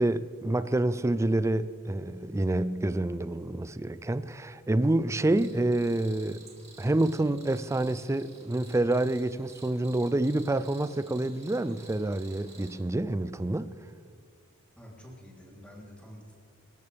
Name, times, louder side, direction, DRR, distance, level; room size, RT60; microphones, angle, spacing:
voice 1, 0.0-6.4 6.8-13.7, right 2 dB, 15° right, 0.4 m, -27 dB
Cricket, 5.4-12.8, right 4 dB, 30° right, 2.6 m, -53 dB
voice 2, 14.8-16.3, equal, 5° left, 3.5 m, -48 dB
25.0 x 13.5 x 3.5 m
head